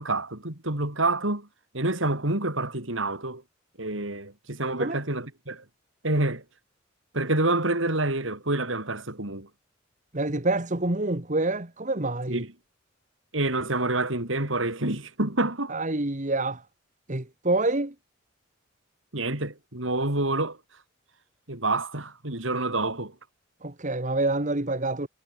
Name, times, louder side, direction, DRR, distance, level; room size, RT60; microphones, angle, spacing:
voice 1, 0.0-1.5 1.7-3.4 3.8-5.6 6.0-6.4 7.1-9.5 12.3-12.5 13.3-15.7 19.1-20.6 21.5-23.1, right 2 dB, 70° right, 4.5 m, -27 dB
voice 2, 10.1-12.4 15.7-16.7 17.1-17.9 23.6-25.1, right 2 dB, 40° right, 2.0 m, -27 dB
head